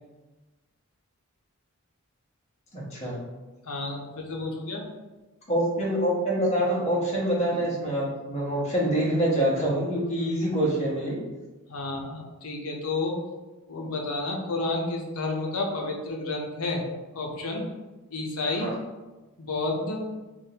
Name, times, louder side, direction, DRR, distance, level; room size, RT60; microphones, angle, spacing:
voice 1, 2.7-3.2 5.5-11.2 18.6-18.7, right 1 dB, 30° left, -5 dB, 1.1 m, -25 dB
voice 2, 3.7-4.9 11.7-13.1 13.7-16.8 17.1-17.6 18.1-18.7 19.4-20.0, left 2 dB, 85° left, 1 dB, 0.8 m, -30 dB
4.9 x 2.5 x 2.9 m, 1.2 s
head